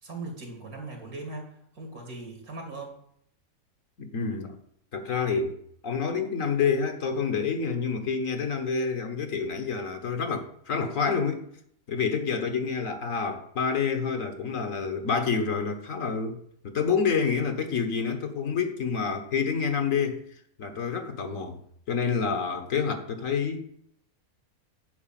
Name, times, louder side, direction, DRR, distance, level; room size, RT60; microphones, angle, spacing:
voice 1, 0.0-3.0, right 2 dB, 75° right, 2 dB, 3.0 m, -39 dB
voice 2, 4.0-4.5 4.9-5.6 5.8-11.5 11.9-16.4 16.6-20.2 20.6-21.5 21.9-23.7, left 5 dB, 65° left, 6 dB, 1.5 m, -28 dB
10.0 x 4.6 x 7.5 m, 0.67 s
omnidirectional pair, 1.5 m